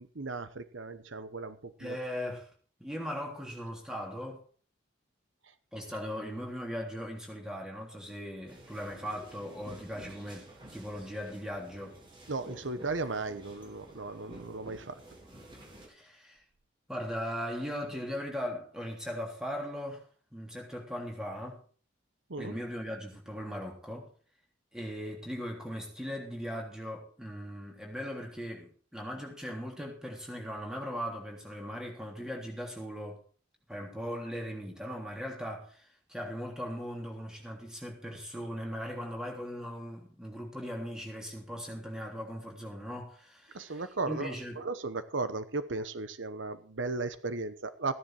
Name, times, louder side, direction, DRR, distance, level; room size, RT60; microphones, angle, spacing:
voice 1, 0.0-2.0 12.3-15.0 22.3-22.6 43.5-47.9, right 3 dB, 80° right, 1.1 m, -36 dB
voice 2, 1.8-2.5 2.8-4.4 5.7-10.5 10.7-12.0 15.9-16.4 16.9-20.0 20.3-21.6 22.4-24.1 24.7-33.2 33.7-44.6, equal, 5° right, 3.2 m, -39 dB
sound 1, 8.5-15.9, right 1 dB, 25° right, 4.4 m, -51 dB
15.5 x 10.5 x 4.8 m
head